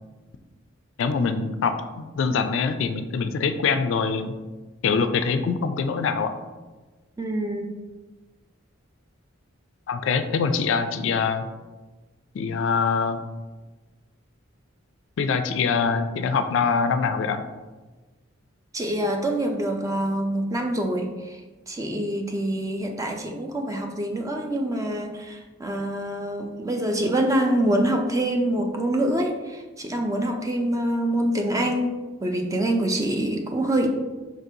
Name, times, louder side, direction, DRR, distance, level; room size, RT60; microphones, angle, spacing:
voice 1, 1.0-4.3 4.8-6.3 9.9-11.5 12.3-13.2 15.2-17.4, left 5 dB, 65° left, 9 dB, 0.3 m, -24 dB
voice 2, 7.2-7.7 18.7-21.4 21.7-33.9, right 1 dB, 15° right, 3 dB, 0.4 m, -25 dB
4.9 x 3.8 x 2.7 m, 1.2 s
head